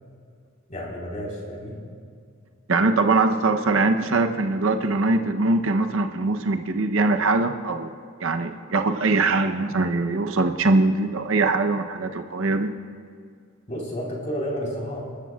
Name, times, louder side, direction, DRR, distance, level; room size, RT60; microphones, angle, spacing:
voice 1, 0.7-1.8 13.7-15.0, equal, 35° left, -3 dB, 3.8 m, -31 dB
voice 2, 2.7-7.9 8.2-12.7, right 3 dB, 65° right, 6 dB, 0.8 m, -22 dB
29.5 x 13.5 x 2.4 m, 2.2 s
head